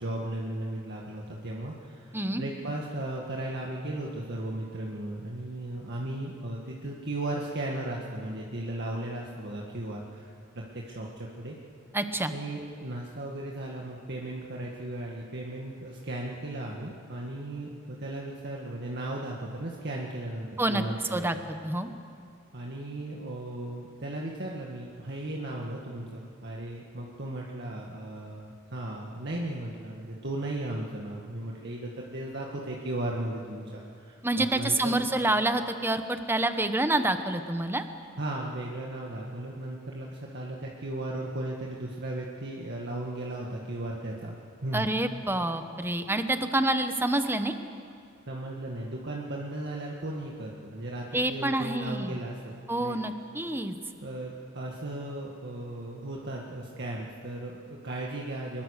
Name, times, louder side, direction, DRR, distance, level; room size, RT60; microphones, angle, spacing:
voice 1, 0.0-11.6 12.3-21.4 22.5-35.0 38.2-44.4 44.6-44.9 48.3-53.0 54.0-58.6, right 1 dB, 55° right, -2 dB, 1.9 m, -36 dB
voice 2, 11.9-12.3 20.6-20.8 21.1-21.4 21.6-21.9 34.2-37.8 44.7-47.5 51.1-52.2 52.7-53.8, right 1 dB, 10° right, 8 dB, 1.1 m, -27 dB
24.0 x 21.5 x 6.7 m, 2.4 s
head